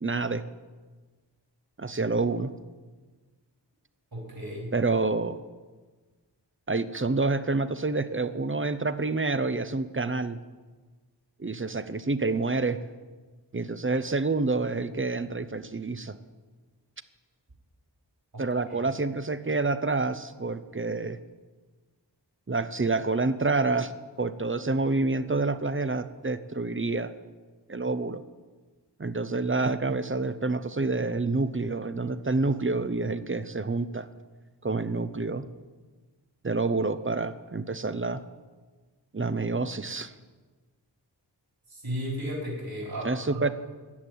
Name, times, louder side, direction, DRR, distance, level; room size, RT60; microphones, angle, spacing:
voice 1, 0.0-0.4 1.8-2.5 4.7-5.4 6.7-10.4 11.4-12.8 13.5-16.2 18.4-21.2 22.5-23.9 24.2-27.1 27.7-28.2 29.0-34.1 34.6-35.4 36.4-38.2 39.1-40.1 43.0-43.5, right 3 dB, 30° right, 13 dB, 0.8 m, -28 dB
voice 2, 4.1-4.7 18.3-18.4 18.7-18.8 41.7-43.4, equal, 55° right, -2 dB, 3.8 m, -34 dB
13.5 x 8.2 x 9.1 m, 1.3 s
wide cardioid pair, 40°, 43 cm